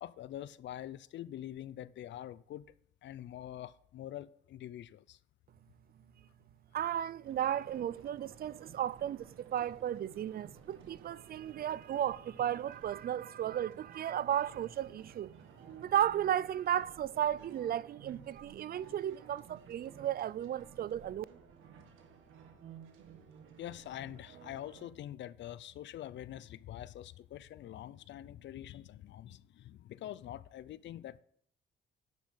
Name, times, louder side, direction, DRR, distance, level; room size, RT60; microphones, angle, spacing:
voice 1, 0.0-2.7 3.0-5.2 23.6-31.2, left 12 dB, 65° left, 0.6 m, -45 dB
voice 2, 6.7-15.3 15.8-21.3, right 10 dB, 50° right, 0.4 m, -34 dB
sound 1, 7.2-24.9, right 7 dB, 90° right, 1.6 m, -55 dB
10.5 x 6.1 x 5.6 m
cardioid pair, 90°, 20 cm